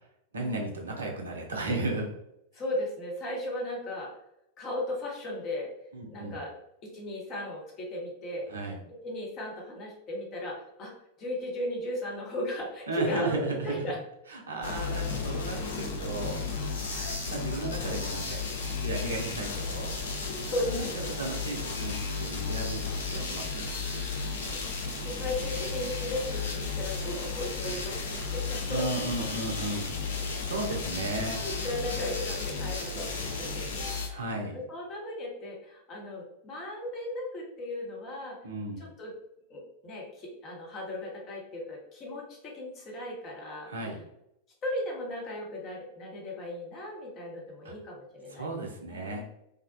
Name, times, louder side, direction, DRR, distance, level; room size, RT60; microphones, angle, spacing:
voice 1, 0.3-2.1 5.9-6.4 8.5-8.8 12.9-13.8 14.3-16.4 17.3-18.4 18.8-19.9 20.7-20.9 21.2-23.6 28.7-29.9 30.4-31.4 34.1-34.5 38.4-38.8 43.7-44.0 47.6-47.7 48.3-49.2, right 2 dB, 70° right, 1 dB, 0.5 m, -34 dB
voice 2, 2.5-4.1 4.6-5.7 6.1-6.5 6.9-8.5 9.0-10.9 11.2-14.0 16.9-17.2 20.2-21.2 24.0-28.8 31.4-38.4 38.8-39.1 39.5-43.7 44.6-48.5 48.9-49.2, left 1 dB, 35° left, -2 dB, 0.8 m, -36 dB
sound 1, 14.6-34.1, left 4 dB, 65° left, 0.4 m, -34 dB
2.4 x 2.1 x 2.5 m, 0.81 s
figure-of-eight pair, 90°, 0 cm